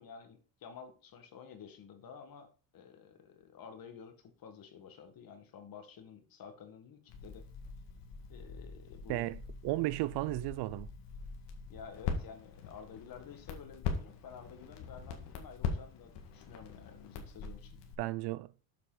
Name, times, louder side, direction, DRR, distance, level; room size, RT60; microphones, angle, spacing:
voice 1, 0.0-2.5 2.7-7.5 8.3-9.3 11.7-17.8, left 7 dB, 50° left, 2.0 m, -51 dB
Crackle, 7.1-17.9, left 5 dB, 65° left, 1.9 m, -42 dB
voice 2, 9.1-10.9 18.0-18.5, right 18 dB, 60° right, 0.5 m, -34 dB
7.4 x 5.2 x 5.0 m
supercardioid pair, 85°, 44 cm